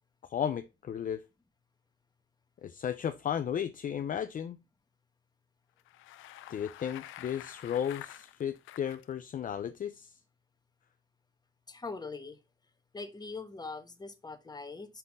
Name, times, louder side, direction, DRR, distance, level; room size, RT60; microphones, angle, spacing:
voice 1, 0.2-1.2 2.6-4.6 6.5-10.1, left 9 dB, 45° left, 0.5 m, -34 dB
Bicycle, 5.8-9.0, left 13 dB, 85° left, 0.5 m, -48 dB
voice 2, 11.7-12.4 12.9-15.0, left 4 dB, 20° left, 1.1 m, -42 dB
5.7 x 4.2 x 4.8 m
cardioid pair, 90°, 20 cm